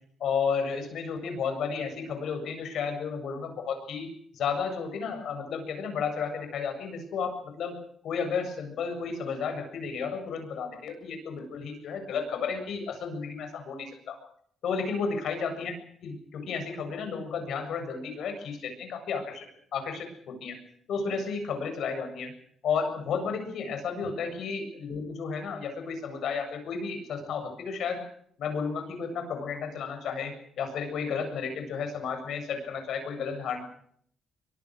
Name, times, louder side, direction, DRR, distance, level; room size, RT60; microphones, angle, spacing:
voice 1, 0.2-4.1 4.3-7.7 8.0-14.2 14.6-15.7 16.0-20.6 20.9-22.3 22.6-28.0 28.4-33.6, left 5 dB, 70° left, 6 dB, 7.7 m, -32 dB
24.0 x 23.0 x 6.6 m, 0.65 s
cardioid pair, 90°, 0 cm